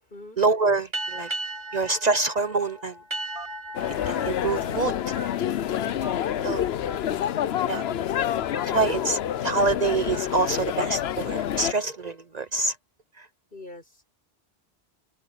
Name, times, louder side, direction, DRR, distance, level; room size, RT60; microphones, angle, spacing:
voice 1, 0.4-1.3 1.7-2.9 4.1-4.9 6.4-6.6 7.7-7.8 8.7-12.7, right 3 dB, 45° right, 0.8 m, -25 dB
sound 1, 0.9-6.0, right 2 dB, 25° right, 1.9 m, -37 dB
Telephone, 3.4-3.7 4.2-4.4 5.1-5.5 6.0-6.1 6.9-7.0 7.7-7.9 8.5-8.7 9.3-9.4 10.1-10.4 11.0-11.2, right 2 dB, 70° right, 5.6 m, -41 dB
sound 2, 3.7-11.7, left 10 dB, 80° left, 0.9 m, -28 dB
voice 2, 13.5-14.1, left 2 dB, 60° left, 5.0 m, -43 dB
omnidirectional pair, 1.0 m